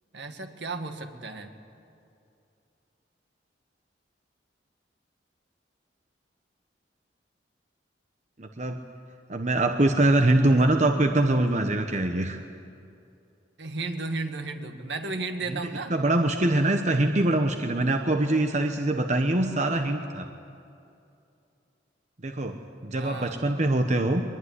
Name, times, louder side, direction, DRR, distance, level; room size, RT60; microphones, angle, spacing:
voice 1, 0.1-1.5 13.6-15.9 22.9-23.4, right 3 dB, 70° right, 6 dB, 1.9 m, -34 dB
voice 2, 8.4-8.8 9.3-12.4 15.5-15.6 15.9-20.3 22.2-22.6 22.8-24.2, right 1 dB, 40° right, 5 dB, 1.1 m, -23 dB
22.5 x 21.5 x 9.7 m, 2.6 s
head